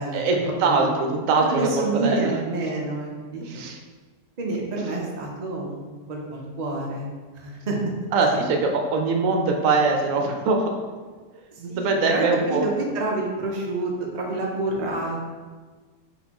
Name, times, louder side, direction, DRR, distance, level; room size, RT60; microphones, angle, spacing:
voice 1, 0.1-2.4 3.4-3.8 4.8-4.9 8.1-10.7 11.6-12.7, right 3 dB, 65° right, 2 dB, 0.9 m, -22 dB
voice 2, 1.4-3.6 4.4-7.8 11.7-15.3, right 2 dB, 90° right, -1 dB, 0.3 m, -28 dB
4.2 x 4.0 x 2.9 m, 1.4 s
omnidirectional pair, 1.7 m